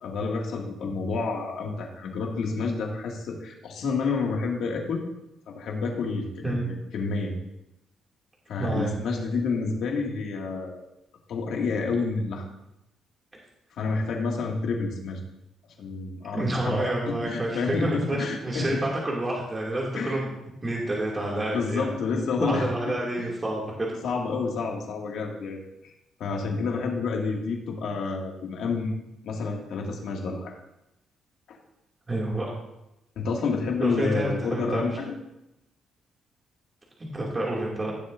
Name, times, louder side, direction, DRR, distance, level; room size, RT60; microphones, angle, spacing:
voice 1, 0.0-5.0 5.5-7.3 8.5-10.8 11.3-12.4 13.8-15.2 15.8-18.8 19.9-20.2 21.5-22.7 23.2-23.3 24.0-25.9 26.2-28.9 29.2-30.5 31.5-31.6 33.2-35.1, left 4 dB, 75° left, 0 dB, 2.2 m, -29 dB
voice 2, 8.6-8.9 16.3-20.3 20.6-21.9 22.4-24.0 32.1-32.5 33.8-34.8 37.1-37.9, right 1 dB, 25° right, -3 dB, 2.5 m, -28 dB
16.0 x 7.4 x 2.6 m, 0.89 s
cardioid pair, 90°, 0 cm